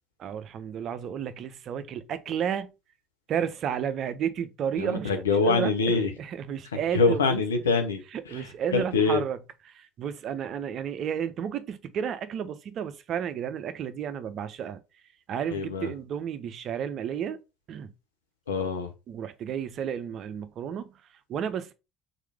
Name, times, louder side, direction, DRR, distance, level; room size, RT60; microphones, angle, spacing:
voice 1, 0.2-2.7 3.3-5.1 5.4-7.4 8.1-9.4 9.7-14.8 15.3-17.4 17.7-17.9 19.1-20.9 21.3-21.7, right 8 dB, 50° right, 0.6 m, -32 dB
voice 2, 4.8-6.1 6.9-9.2 15.5-15.9 18.5-18.9, left 4 dB, 80° left, 0.7 m, -25 dB
3.9 x 3.2 x 3.4 m
figure-of-eight pair, 60°, 0 cm